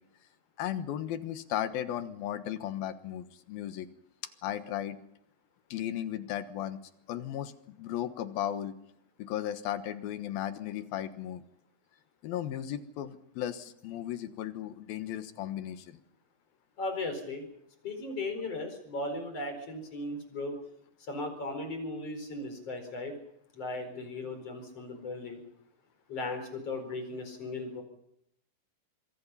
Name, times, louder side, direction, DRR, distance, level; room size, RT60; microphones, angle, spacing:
voice 1, 0.6-3.9 4.4-5.0 5.7-6.8 7.1-7.5 7.8-8.7 9.2-11.4 12.2-16.0, left 11 dB, 90° left, 10 dB, 3.1 m, -35 dB
voice 2, 16.8-17.4 17.8-20.6 21.1-23.1 23.5-25.4 26.1-27.8, left 2 dB, 40° left, 6 dB, 5.4 m, -37 dB
26.0 x 23.0 x 5.7 m, 0.78 s
omnidirectional pair, 4.2 m